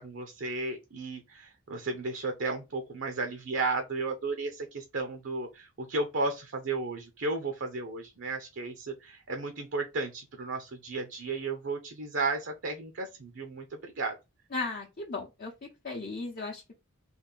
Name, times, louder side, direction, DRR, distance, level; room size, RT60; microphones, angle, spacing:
voice 1, 0.0-14.1, right 3 dB, 65° right, 0.7 m, -34 dB
voice 2, 14.5-15.5 15.8-16.7, left 3 dB, 45° left, 0.7 m, -36 dB
3.4 x 2.5 x 3.8 m
head